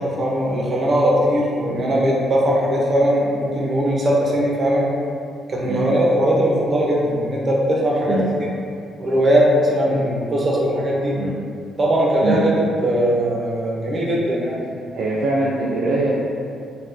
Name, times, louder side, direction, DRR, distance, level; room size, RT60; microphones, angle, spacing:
voice 1, 0.2-4.9 5.5-8.2 9.0-11.1 11.8-14.6, equal, 35° right, -4 dB, 0.7 m, -19 dB
voice 2, 14.9-16.1, right 2 dB, 65° right, -5 dB, 0.4 m, -22 dB
3.5 x 2.2 x 2.6 m, 2.4 s
cardioid pair, 90°, 0 cm